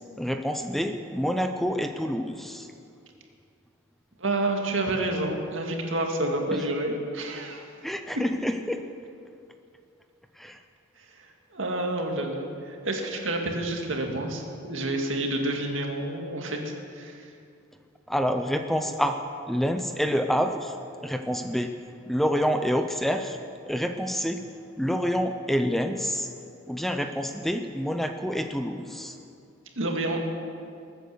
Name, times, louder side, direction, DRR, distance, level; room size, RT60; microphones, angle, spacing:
voice 1, 0.2-2.7 6.5-6.6 7.8-8.8 10.4-10.6 18.1-19.2 19.5-20.8 21.0-21.7 22.1-23.4 23.7-24.4 24.8-26.3 26.7-29.2, equal, ahead, 6 dB, 0.5 m, -27 dB
voice 2, 4.2-7.7 11.0-17.3 29.8-30.2, right 2 dB, 75° right, 2 dB, 2.1 m, -29 dB
21.0 x 9.2 x 6.9 m, 2.4 s
head